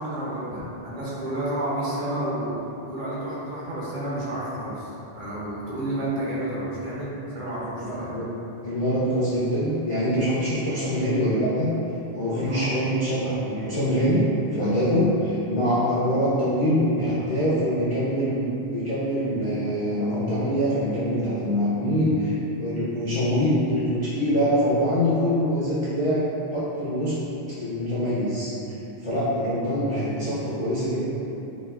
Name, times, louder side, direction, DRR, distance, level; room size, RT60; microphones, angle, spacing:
voice 1, 0.0-8.1 12.3-12.7, right 1 dB, 55° right, -9 dB, 0.7 m, -30 dB
voice 2, 7.8-8.3 8.6-11.7 12.1-14.3 14.5-22.3 22.6-27.2 27.5-28.5 29.0-31.1, equal, 50° left, -11 dB, 0.3 m, -24 dB
3.0 x 2.3 x 2.3 m, 3.0 s
omnidirectional pair, 1.1 m